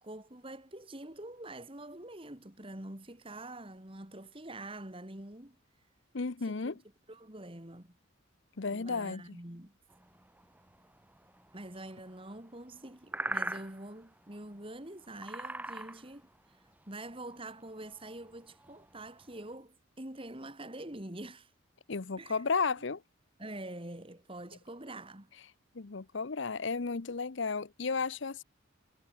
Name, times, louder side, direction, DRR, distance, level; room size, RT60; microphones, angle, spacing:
voice 1, 0.0-5.6 6.4-6.7 7.1-8.0 8.7-9.7 11.5-21.5 22.2-22.4 23.4-25.3, right 1 dB, 25° right, 2.4 m, -45 dB
voice 2, 6.1-6.8 8.6-9.4 21.9-23.0 25.7-28.4, left 4 dB, 60° left, 0.7 m, -33 dB
sound 1, 9.9-19.5, right 1 dB, 10° right, 1.7 m, -43 dB
head